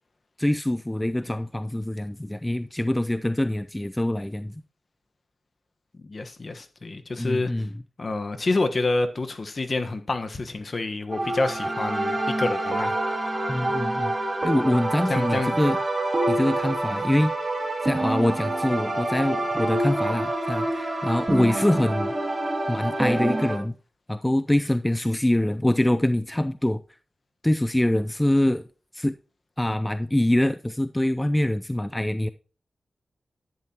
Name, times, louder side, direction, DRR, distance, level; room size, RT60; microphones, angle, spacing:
voice 1, 0.4-4.5 7.2-7.7 13.5-14.1 14.4-15.8 16.3-17.3 17.8-22.1 22.7-23.7 24.1-26.8 27.4-28.6 28.9-29.1 29.6-32.3, left 1 dB, 15° left, 0.4 m, -24 dB
voice 2, 5.9-7.5 8.0-13.0 14.7-14.8 15.1-15.6, left 2 dB, 45° left, 1.2 m, -28 dB
sound 1, 11.1-23.6, right 1 dB, 25° right, 2.7 m, -27 dB
10.5 x 9.5 x 2.9 m
wide cardioid pair, 75°, 0 cm